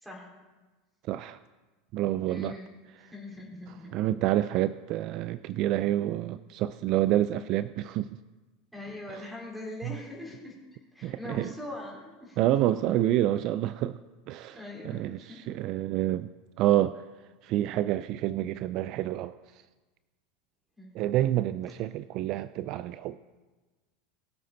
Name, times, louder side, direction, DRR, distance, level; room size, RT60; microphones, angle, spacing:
voice 1, 1.1-1.4 1.9-2.6 3.9-8.1 9.1-9.2 9.8-9.9 11.0-11.5 12.4-14.0 14.3-14.6 14.8-16.3 16.6-17.0 17.4-19.3 20.9-23.2, right 13 dB, 55° right, 14 dB, 0.4 m, -28 dB
voice 2, 2.3-2.7 3.0-3.9 8.7-10.5 10.9-12.6 14.5-15.4 20.8-20.9, left 2 dB, 5° right, -2 dB, 4.3 m, -42 dB
21.5 x 7.6 x 4.0 m, 1.2 s
supercardioid pair, 110°, 0 cm